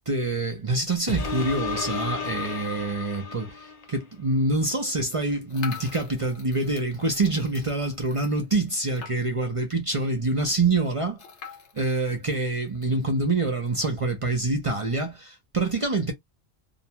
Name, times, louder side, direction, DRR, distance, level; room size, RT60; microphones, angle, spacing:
voice 1, 0.1-11.2 11.7-16.1, right 2 dB, 40° right, 0.5 m, -26 dB
sound 1, 1.1-4.0 4.5-4.6, left 4 dB, 40° left, 0.7 m, -32 dB
sound 2, 5.5-9.5 9.9-10.0 10.2-10.3 11.2-12.9, left 7 dB, 85° left, 1.1 m, -44 dB
2.6 x 2.2 x 2.8 m
omnidirectional pair, 1.1 m